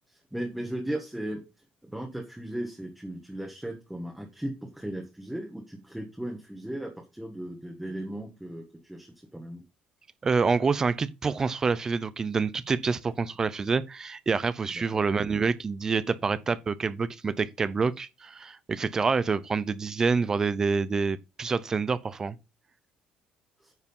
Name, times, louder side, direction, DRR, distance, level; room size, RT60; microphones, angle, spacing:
voice 1, 0.1-1.4 1.8-9.6 14.8-15.0 23.6-23.7, right 1 dB, 5° right, 1.4 m, -36 dB
voice 2, 10.2-22.4, right 4 dB, 20° right, 0.6 m, -27 dB
9.8 x 4.8 x 5.5 m
cardioid pair, 175°, 3 cm